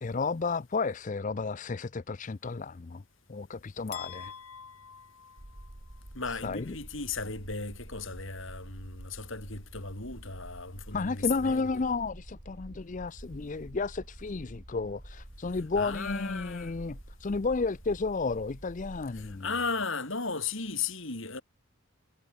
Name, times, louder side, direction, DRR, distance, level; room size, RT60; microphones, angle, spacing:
voice 1, 0.0-3.0 3.3-4.3 6.3-6.8 10.9-19.5, left 4 dB, 35° left, 0.5 m, -32 dB
sound 1, 3.9-6.0, left 7 dB, 85° left, 2.5 m, -46 dB
sound 2, 5.4-19.4, right 1 dB, 35° right, 1.8 m, -48 dB
voice 2, 6.1-11.7 15.8-16.7 19.1-21.4, left 4 dB, 60° left, 4.5 m, -35 dB
head